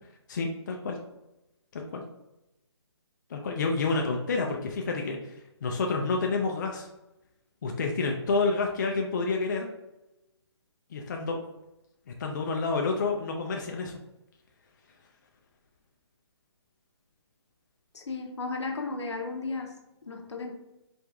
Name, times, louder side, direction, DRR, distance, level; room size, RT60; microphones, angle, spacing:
voice 1, 0.3-1.0 1.7-2.0 3.3-6.9 7.6-9.7 10.9-11.4 12.2-13.9, left 3 dB, 40° left, 2 dB, 0.4 m, -29 dB
voice 2, 17.9-19.8 20.1-20.5, left 3 dB, 80° left, 3 dB, 0.8 m, -34 dB
4.5 x 2.5 x 2.3 m, 0.95 s
hypercardioid pair, 160°, 15 cm